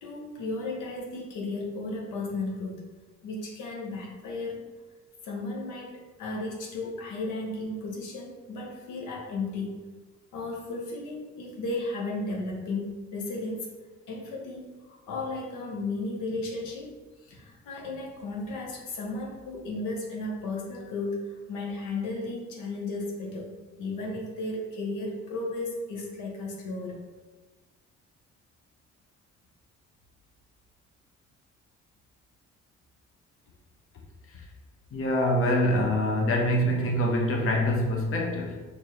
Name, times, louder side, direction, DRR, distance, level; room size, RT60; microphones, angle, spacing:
voice 1, 0.0-2.9 3.2-4.6 5.2-9.8 10.3-13.7 14.1-17.0 17.3-23.5 23.8-27.0, left 2 dB, 85° left, -1 dB, 0.8 m, -34 dB
voice 2, 34.9-38.6, equal, 45° left, 0 dB, 0.8 m, -25 dB
4.5 x 2.6 x 3.0 m, 1.3 s
cardioid pair, 90°, 30 cm